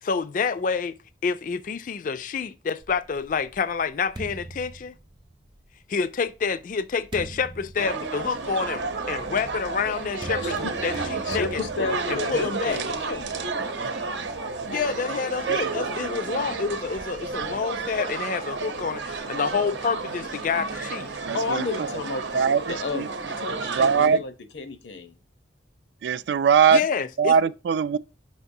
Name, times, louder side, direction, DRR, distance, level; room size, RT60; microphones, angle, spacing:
voice 1, 0.0-0.9 1.2-4.9 5.9-12.8 14.7-21.1 26.7-27.3, left 5 dB, 45° left, 0.4 m, -28 dB
sound 1, 2.8-5.6 6.4-13.4, right 2 dB, 25° right, 0.6 m, -42 dB
sound 2, 7.8-24.1, right 4 dB, 85° right, 0.8 m, -31 dB
voice 2, 10.4-13.9 21.3-25.2, left 4 dB, 85° left, 0.8 m, -33 dB
voice 3, 21.2-21.6 22.3-22.6 22.9-23.1 23.6-24.2 26.0-26.8 27.2-28.0, right 6 dB, 70° right, 0.3 m, -20 dB
6.8 x 5.2 x 2.7 m
head